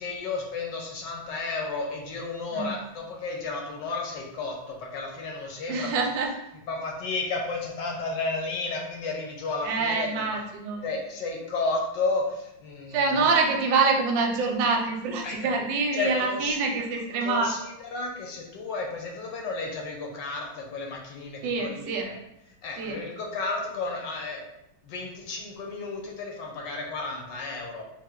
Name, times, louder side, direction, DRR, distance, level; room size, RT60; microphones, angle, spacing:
voice 1, 0.0-6.0 6.7-10.2 10.8-13.1 15.2-15.4 15.9-16.6 17.2-17.6 17.9-22.1 22.6-24.4 24.9-27.8, left 3 dB, 70° left, 0 dB, 1.2 m, -32 dB
voice 2, 5.7-6.3 9.6-10.8 12.9-17.5 21.4-22.1 22.8-23.0, right 4 dB, 75° right, 2 dB, 1.2 m, -26 dB
3.5 x 2.5 x 3.6 m, 0.85 s
omnidirectional pair, 2.2 m